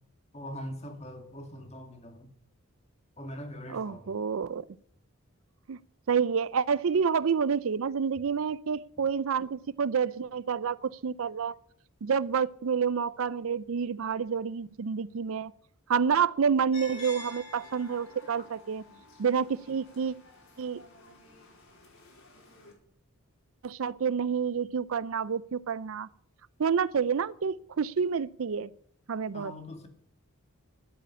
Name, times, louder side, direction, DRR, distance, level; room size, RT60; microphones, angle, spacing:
voice 1, 0.3-2.3 3.2-4.1 29.3-29.9, equal, 30° left, 2.1 m, -42 dB
voice 2, 3.7-4.6 5.7-5.8 6.1-11.6 12.0-15.5 15.9-18.8 19.2-20.1 20.6-20.8 23.6-26.1 26.6-28.7 29.1-29.5, right 6 dB, 65° right, 0.5 m, -28 dB
sound 1, 16.7-22.7, left 2 dB, 65° left, 4.2 m, -49 dB
11.5 x 8.4 x 9.7 m
head